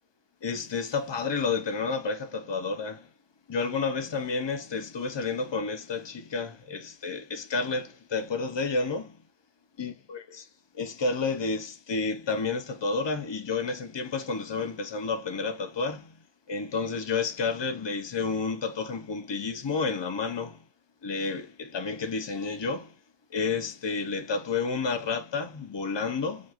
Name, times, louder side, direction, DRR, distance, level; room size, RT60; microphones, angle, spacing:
voice 1, 0.4-3.1 3.5-9.2 9.8-10.4 10.7-16.2 16.5-20.6 21.0-22.9 23.3-26.5, left 4 dB, 45° left, 0.3 m, -30 dB
5.1 x 2.3 x 2.8 m
omnidirectional pair, 1.2 m